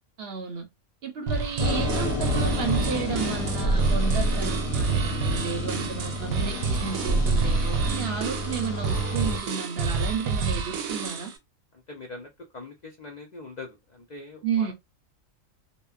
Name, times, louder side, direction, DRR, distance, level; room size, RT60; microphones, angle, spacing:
voice 1, 0.2-0.7 1.0-11.3 14.4-14.7, right 6 dB, 60° right, 0.7 m, -32 dB
sound 1, 1.3-11.4, right 4 dB, 85° right, 1.0 m, -29 dB
sound 2, 1.6-9.4, right 1 dB, 85° left, 1.2 m, -28 dB
voice 2, 11.9-14.7, left 3 dB, 70° left, 0.4 m, -42 dB
2.8 x 2.1 x 2.3 m
omnidirectional pair, 1.4 m